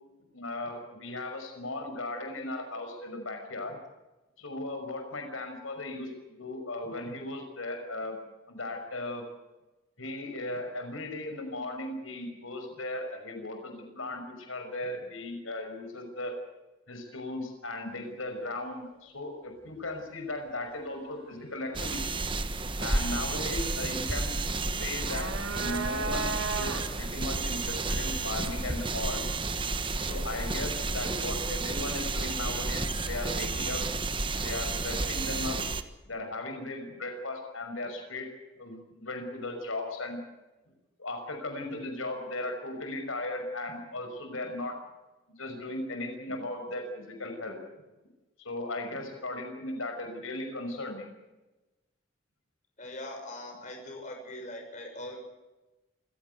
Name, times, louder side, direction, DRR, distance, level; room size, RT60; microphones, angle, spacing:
voice 1, 0.3-3.8 4.4-8.2 8.5-9.2 10.0-16.4 16.9-22.1 22.8-24.4 24.8-29.2 29.6-29.7 30.1-33.8 34.4-35.6 36.1-38.3 38.6-40.2 41.0-44.8 45.4-47.6 48.4-51.1, left 2 dB, 90° left, 5 dB, 5.8 m, -37 dB
sound 1, 21.7-35.8, right 3 dB, 25° right, 1.3 m, -31 dB
sound 2, 24.8-27.1, right 3 dB, 90° right, 4.1 m, -34 dB
voice 2, 52.8-55.2, left 1 dB, 35° left, 3 dB, 6.3 m, -41 dB
27.5 x 16.0 x 8.2 m, 1.1 s
head